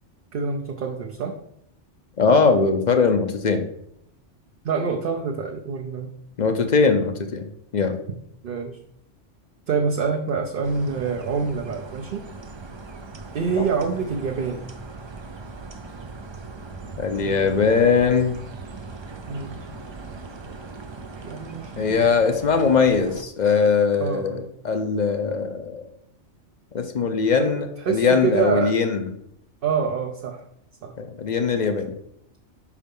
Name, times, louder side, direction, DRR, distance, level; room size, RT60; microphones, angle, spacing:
voice 1, 0.3-1.4 4.6-6.1 8.4-8.8 9.7-12.2 13.3-14.7 17.2-17.8 19.3-19.6 21.2-22.1 24.0-24.4 27.4-27.5 27.8-28.7 29.6-30.4 30.8-30.9, right 5 dB, 55° right, 2 dB, 0.8 m, -26 dB
voice 2, 2.2-3.6 6.4-7.5 7.7-7.9 13.6-13.7 17.0-18.4 21.8-25.8 26.7-29.1 31.0-31.9, left 5 dB, 45° left, 7 dB, 0.7 m, -21 dB
sound 1, 10.6-23.2, right 3 dB, 40° right, 0.4 m, -39 dB
5.5 x 4.8 x 5.3 m, 0.73 s
omnidirectional pair, 1.3 m